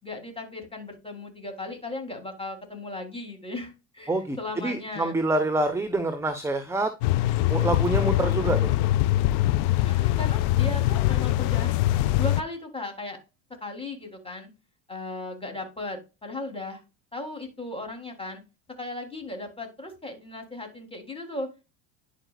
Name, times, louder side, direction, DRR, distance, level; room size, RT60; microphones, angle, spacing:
voice 1, 0.0-5.1 9.7-11.8 12.2-13.2 13.6-14.5 14.9-16.8 17.1-18.4 18.8-21.5, left 2 dB, 10° left, 3 dB, 3.5 m, -36 dB
voice 2, 4.1-6.9 7.5-8.7, right 2 dB, 5° right, 9 dB, 0.9 m, -26 dB
sound 1, 7.0-12.4, left 14 dB, 70° left, 0.6 m, -23 dB
11.0 x 5.0 x 2.4 m, 0.28 s
supercardioid pair, 85°, 48 cm